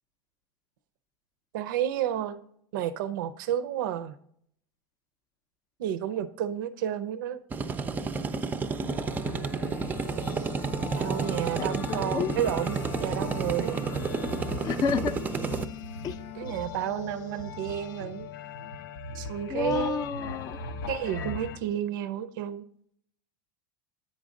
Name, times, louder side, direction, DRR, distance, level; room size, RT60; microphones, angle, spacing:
voice 1, 1.5-2.4 2.7-4.2 5.8-7.4 11.0-13.9 16.4-18.3 19.1-20.0 20.9-22.6, right 10 dB, 80° right, 14 dB, 0.5 m, -31 dB
sound 1, 7.5-15.6, right 4 dB, 15° right, 0.4 m, -31 dB
sound 2, 8.8-21.6, left 4 dB, 85° left, 0.6 m, -39 dB
voice 2, 11.6-12.3 14.6-15.1 16.0-16.2 19.5-20.6, left 6 dB, 35° left, 9 dB, 0.5 m, -30 dB
8.6 x 5.2 x 3.7 m, 0.66 s
supercardioid pair, 125°, 11 cm